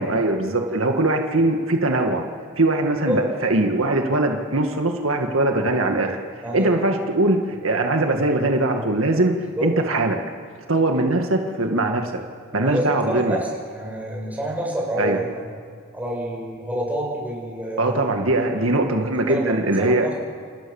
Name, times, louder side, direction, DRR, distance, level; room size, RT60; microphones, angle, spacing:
voice 1, 0.0-2.2 2.6-6.2 6.5-9.3 9.6-10.2 10.7-12.1 12.5-13.4 15.0-15.2 17.8-20.1, right 2 dB, 75° right, 3 dB, 1.9 m, -21 dB
voice 2, 6.4-7.1 9.6-9.7 12.5-15.4 15.9-18.0 19.3-20.1, equal, 10° right, -3 dB, 7.2 m, -28 dB
27.5 x 27.0 x 7.2 m, 2.1 s
head